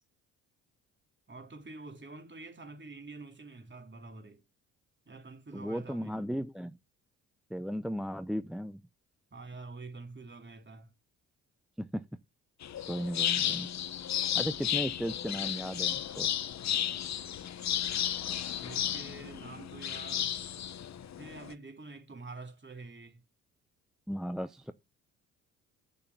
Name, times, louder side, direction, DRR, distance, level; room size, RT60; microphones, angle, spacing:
voice 1, 1.3-4.4 5.1-6.2 9.3-10.9 18.4-20.4 21.2-23.2, right 3 dB, 30° right, 3.2 m, -47 dB
voice 2, 5.5-6.7 7.5-8.8 11.8-12.0 12.9-13.7 14.4-16.3 24.1-24.7, equal, ahead, 0.7 m, -35 dB
sound 1, 12.6-21.5, left 10 dB, 45° left, 0.9 m, -33 dB
7.7 x 6.8 x 7.1 m
hypercardioid pair, 50°, 39 cm